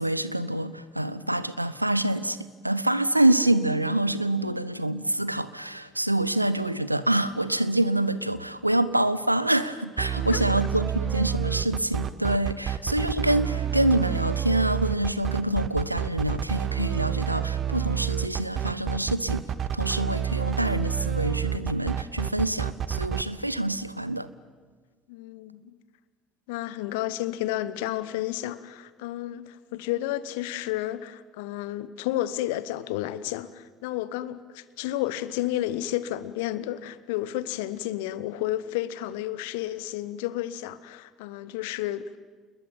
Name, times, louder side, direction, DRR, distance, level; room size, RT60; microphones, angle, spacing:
voice 1, 0.0-2.4 2.6-19.4 19.7-24.3, right 1 dB, 90° right, 0.7 m, -26 dB
sound 1, 10.0-23.2, right 10 dB, 40° right, 1.2 m, -28 dB
voice 2, 25.1-25.8 26.5-42.2, left 14 dB, 65° left, 1.0 m, -31 dB
29.0 x 21.0 x 9.1 m
figure-of-eight pair, 60°, 0 cm